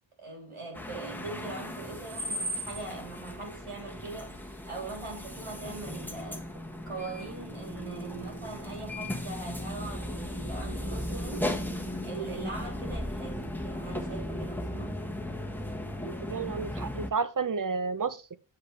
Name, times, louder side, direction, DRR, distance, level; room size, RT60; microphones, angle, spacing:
voice 1, 0.2-6.5 6.9-11.5 12.0-15.0, right 3 dB, 80° right, 3.5 m, -41 dB
sound 1, 0.7-17.1, left 1 dB, 5° left, 1.3 m, -36 dB
sound 2, 5.4-11.7, right 3 dB, 15° right, 2.9 m, -57 dB
voice 2, 16.1-18.4, right 5 dB, 40° right, 0.8 m, -31 dB
8.1 x 6.8 x 3.3 m
wide cardioid pair, 55°, 49 cm